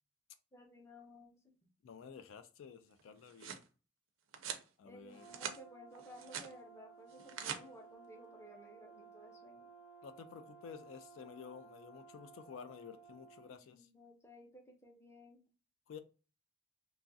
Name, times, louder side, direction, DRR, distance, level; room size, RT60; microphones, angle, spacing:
voice 1, 0.5-1.5 4.8-9.7 13.7-15.4, equal, 15° left, 0.6 m, -57 dB
voice 2, 1.8-3.6 4.8-5.3 10.0-13.9 15.9-16.0, left 6 dB, 75° left, 0.3 m, -52 dB
sound 1, 3.0-3.7 4.3-4.7 5.1-5.6 6.0-6.5 7.1-7.6, right 8 dB, 90° right, 0.5 m, -44 dB
Brass instrument, 5.1-13.5, right 5 dB, 55° left, 0.9 m, -58 dB
3.0 x 2.3 x 2.6 m
head